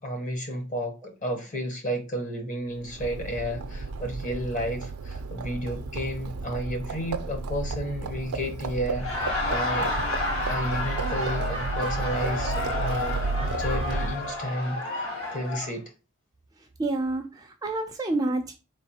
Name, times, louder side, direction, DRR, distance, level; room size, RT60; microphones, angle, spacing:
voice 1, 0.0-9.9 10.5-15.1 15.3-15.8, equal, 35° left, 0.8 m, -32 dB
Livestock farm animals working animals, 2.8-14.4, right 3 dB, 85° right, 0.5 m, -32 dB
Laughter, 8.9-15.7, left 2 dB, 65° left, 1.3 m, -31 dB
voice 2, 16.8-18.5, right 2 dB, 15° right, 0.3 m, -28 dB
4.4 x 3.3 x 2.8 m
head